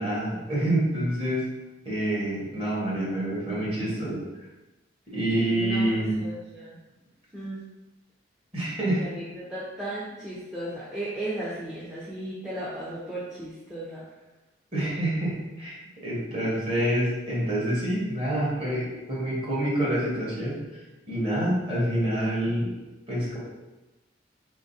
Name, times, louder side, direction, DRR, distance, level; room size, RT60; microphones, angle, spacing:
voice 1, 0.0-1.5 1.8-4.2 5.1-6.2 8.5-9.0 14.7-15.8 16.0-20.8 21.1-22.7 23.1-23.4, right 1 dB, 30° right, -7 dB, 1.4 m, -27 dB
voice 2, 5.5-6.8 7.3-7.6 9.0-14.0, right 1 dB, 5° right, -9 dB, 0.7 m, -35 dB
4.4 x 3.7 x 2.7 m, 1.1 s
head